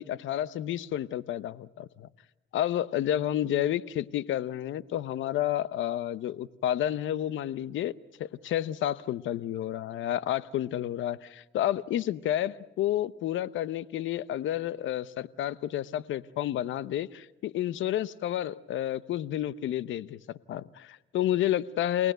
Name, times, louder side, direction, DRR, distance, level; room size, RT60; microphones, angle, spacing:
voice 1, 0.0-2.1 2.5-7.9 8.2-22.1, left 12 dB, 75° left, 0.8 m, -30 dB
29.5 x 18.5 x 8.0 m
cardioid pair, 90°, 20 cm